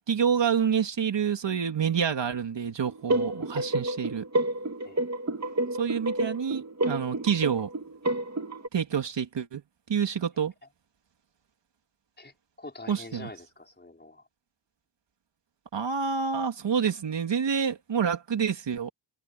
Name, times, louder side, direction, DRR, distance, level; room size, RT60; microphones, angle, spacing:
voice 1, 0.1-4.2 5.7-7.7 8.7-9.6 9.9-10.5 12.9-13.3 15.7-18.9, right 7 dB, 60° right, 2.8 m, -28 dB
sound 1, 2.9-8.7, right 1 dB, 30° right, 2.9 m, -30 dB
voice 2, 12.2-14.2, left 2 dB, 20° left, 5.5 m, -45 dB
open air
cardioid pair, 80°, 50 cm